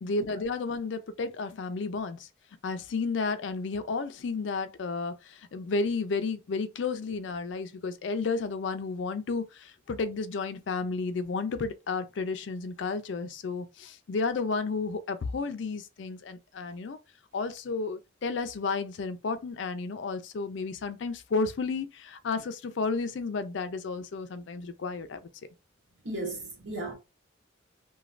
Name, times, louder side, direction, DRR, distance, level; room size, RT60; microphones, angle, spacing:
voice 1, 0.0-2.3 2.6-17.0 17.3-25.2, left 4 dB, 70° left, 0.4 m, -32 dB
voice 2, 26.0-26.9, right 2 dB, 80° right, 1.4 m, -35 dB
3.1 x 2.3 x 2.4 m
head